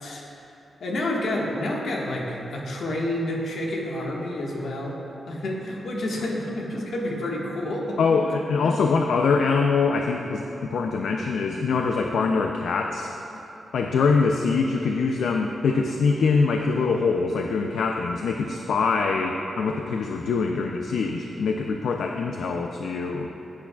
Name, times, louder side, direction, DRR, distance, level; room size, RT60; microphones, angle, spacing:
voice 1, 0.8-5.0 5.3-8.4 8.6-8.8, left 1 dB, 70° left, -2 dB, 1.5 m, -29 dB
voice 2, 8.0-13.1 13.7-23.3, left 4 dB, 85° left, 3 dB, 0.4 m, -24 dB
15.5 x 8.6 x 2.3 m, 3.0 s
wide cardioid pair, 175°, 0 cm